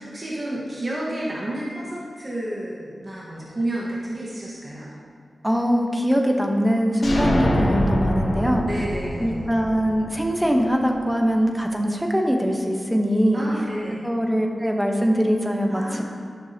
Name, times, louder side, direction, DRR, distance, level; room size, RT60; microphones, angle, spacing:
voice 1, 0.0-4.9 8.6-9.5 13.3-14.1 15.7-16.0, right 1 dB, 40° right, -6 dB, 1.4 m, -31 dB
voice 2, 5.4-8.6 9.2-13.5 14.0-16.0, equal, 5° right, 2 dB, 1.0 m, -22 dB
sound 1, 7.0-10.7, left 1 dB, 65° left, 2.0 m, -24 dB
11.5 x 6.2 x 2.9 m, 2.1 s
cardioid pair, 55°, 0 cm